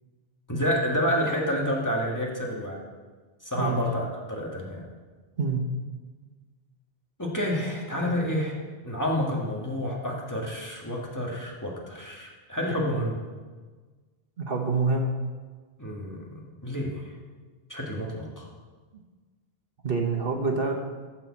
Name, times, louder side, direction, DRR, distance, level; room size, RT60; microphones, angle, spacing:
voice 1, 0.5-2.8 3.4-4.9 7.2-8.5 8.8-13.2 15.8-17.1 17.7-18.5, equal, 15° left, -3 dB, 1.5 m, -29 dB
voice 2, 14.4-15.1 19.8-20.7, right 4 dB, 60° right, 2 dB, 1.3 m, -26 dB
13.5 x 4.5 x 7.2 m, 1.4 s
omnidirectional pair, 1.1 m